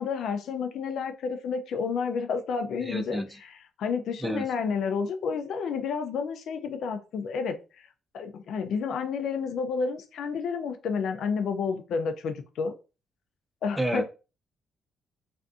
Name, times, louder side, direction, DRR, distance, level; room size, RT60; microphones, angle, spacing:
voice 1, 0.0-3.2 3.8-7.9 8.1-12.7 13.6-14.0, left 5 dB, 70° left, 0.4 m, -30 dB
voice 2, 2.8-3.3 4.2-4.4 13.8-14.0, right 1 dB, 10° right, 0.5 m, -29 dB
2.5 x 2.2 x 2.5 m
cardioid pair, 90°, 0 cm